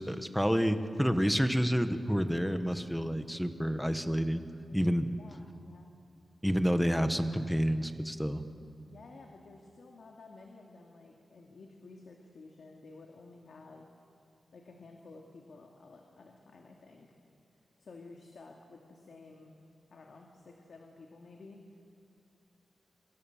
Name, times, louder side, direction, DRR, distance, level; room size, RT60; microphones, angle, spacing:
voice 1, 0.0-4.4 4.7-5.1 6.4-8.4, equal, ahead, 8 dB, 1.3 m, -29 dB
voice 2, 5.2-5.9 8.9-13.9 14.5-17.2 17.8-19.5 19.9-21.6, left 3 dB, 65° left, 1 dB, 2.4 m, -53 dB
26.5 x 25.5 x 7.3 m, 2.5 s
wide cardioid pair, 140°, 0 cm